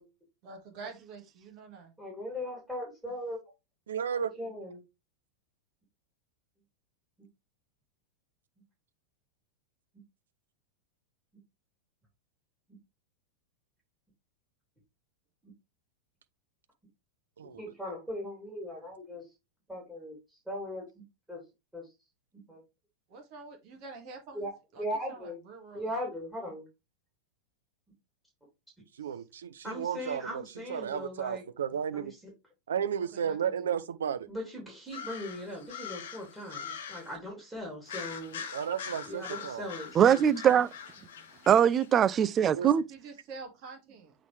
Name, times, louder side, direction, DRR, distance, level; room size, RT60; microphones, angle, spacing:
voice 1, 0.4-1.9 23.1-25.9 29.0-29.2 33.1-33.7 42.9-44.1, right 4 dB, 40° right, 2.0 m, -47 dB
voice 2, 2.0-3.4 4.4-4.8 17.6-19.3 19.7-21.4 21.7-21.9 22.5-22.6 24.3-25.4 25.7-26.6 29.6-31.4 31.9-32.3 34.3-38.4 39.1-40.3, left 1 dB, 5° right, 3.0 m, -39 dB
voice 3, 3.9-4.3 17.4-17.6 29.0-30.4 30.7-32.1 32.7-34.3 38.5-39.6 42.5-42.7, right 8 dB, 65° right, 0.6 m, -33 dB
sound 1, 34.9-37.2 37.9-41.9, left 7 dB, 60° left, 1.0 m, -43 dB
voice 4, 40.0-40.7 41.5-42.8, right 9 dB, 25° right, 0.4 m, -22 dB
8.1 x 3.8 x 3.2 m
figure-of-eight pair, 90°, 0 cm